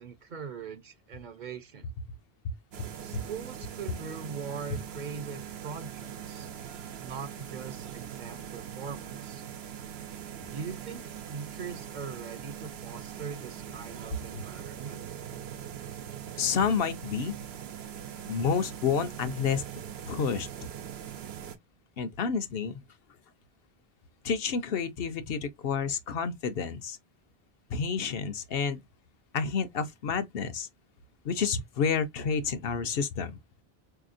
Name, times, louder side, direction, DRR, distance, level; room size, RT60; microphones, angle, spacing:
voice 1, 0.0-1.9 3.0-6.5 7.0-9.4 10.4-11.0 11.3-15.0, right 6 dB, 55° right, 0.6 m, -41 dB
sound 1, 2.7-21.6, right 9 dB, 80° right, 0.9 m, -42 dB
voice 2, 2.8-3.2 14.3-14.4 16.4-17.4 18.3-19.6 20.1-20.5 22.0-22.8 24.2-27.0 27.7-28.8 29.3-30.7 31.2-33.4, left 6 dB, 70° left, 0.8 m, -29 dB
4.1 x 2.8 x 2.4 m
omnidirectional pair, 1.0 m